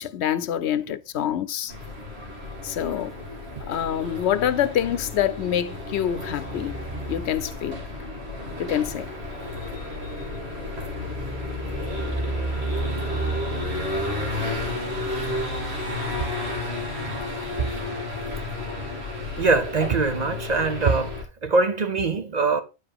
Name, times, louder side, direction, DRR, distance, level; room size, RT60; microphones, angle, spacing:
voice 1, 0.0-1.7 2.6-3.1 3.7-6.8 7.1-7.8 8.6-9.1, left 10 dB, 80° left, 0.9 m, -26 dB
sound 1, 1.7-21.2, left 1 dB, 70° right, 2.3 m, -31 dB
voice 2, 19.4-22.6, right 4 dB, 45° right, 0.7 m, -23 dB
9.2 x 4.9 x 3.5 m
omnidirectional pair, 1.1 m